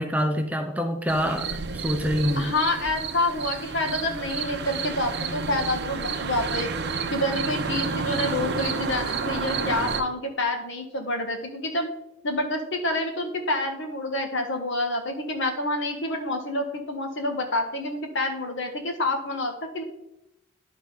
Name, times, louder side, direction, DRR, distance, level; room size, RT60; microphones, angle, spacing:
voice 1, 0.0-2.5, equal, 5° right, 5 dB, 0.5 m, -26 dB
sound 1, 1.1-10.0, right 4 dB, 55° right, 0.8 m, -30 dB
voice 2, 2.4-6.7 7.1-11.9 12.2-19.8, left 2 dB, 60° left, 4 dB, 1.4 m, -28 dB
10.5 x 3.8 x 5.6 m, 0.88 s
head